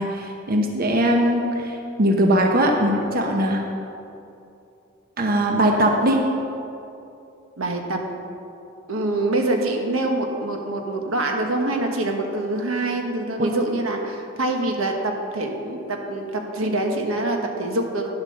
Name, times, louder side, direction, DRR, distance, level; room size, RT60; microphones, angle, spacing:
voice 1, 0.0-3.6 5.2-6.2 13.4-13.5, right 1 dB, 45° right, 2 dB, 0.9 m, -20 dB
voice 2, 7.6-8.0 8.9-18.1, right 2 dB, 85° right, 2 dB, 1.3 m, -25 dB
10.5 x 7.3 x 6.5 m, 2.7 s
head